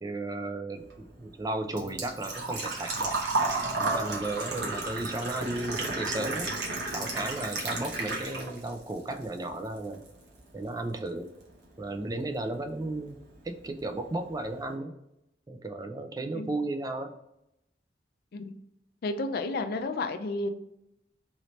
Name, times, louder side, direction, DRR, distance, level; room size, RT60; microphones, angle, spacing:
voice 1, 0.0-3.1 3.8-6.5 6.9-10.0 10.5-11.3 11.8-13.2 13.4-14.9 15.5-17.1, right 2 dB, 20° right, 6 dB, 0.3 m, -34 dB
Engine / Trickle dribble / Fill (with liquid), 0.8-8.7 9.1-10.1 10.4-10.5 12.4-12.5 12.6-13.0 13.3-13.4 13.7-13.8, right 3 dB, 85° right, 0.8 m, -32 dB
voice 2, 19.0-20.5, left 2 dB, 60° left, 7 dB, 0.4 m, -31 dB
3.1 x 2.7 x 3.0 m, 0.83 s
head